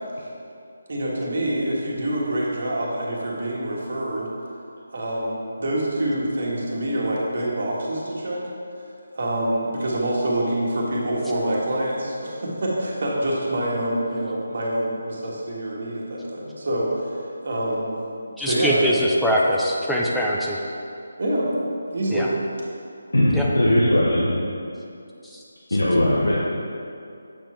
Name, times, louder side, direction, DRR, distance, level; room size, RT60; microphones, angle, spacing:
voice 1, 0.9-4.3 4.9-8.4 9.1-18.0 18.4-19.0 21.2-21.5 21.9-22.3, right 1 dB, 55° right, -4 dB, 1.6 m, -26 dB
voice 2, 18.4-20.6 22.1-22.3 23.3-23.5, equal, ahead, -5 dB, 0.5 m, -22 dB
voice 3, 23.1-24.3 25.7-26.4, left 1 dB, 80° left, -5 dB, 1.0 m, -19 dB
7.4 x 4.5 x 4.4 m, 2.5 s
figure-of-eight pair, 155°, 0 cm